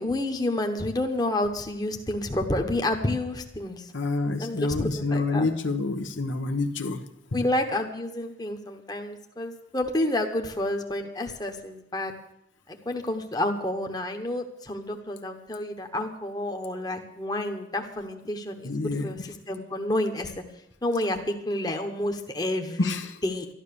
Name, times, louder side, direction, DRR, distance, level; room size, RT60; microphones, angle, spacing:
voice 1, 0.0-3.9 4.4-5.5 7.3-12.1 12.8-18.7 19.0-19.2 19.5-20.3 20.8-23.0 23.2-23.5, left 1 dB, 20° left, 4 dB, 1.1 m, -29 dB
voice 2, 3.9-7.0 7.3-7.4 18.6-19.1 22.8-23.2, left 3 dB, 80° left, 6 dB, 1.1 m, -28 dB
12.5 x 11.5 x 6.8 m, 0.80 s
head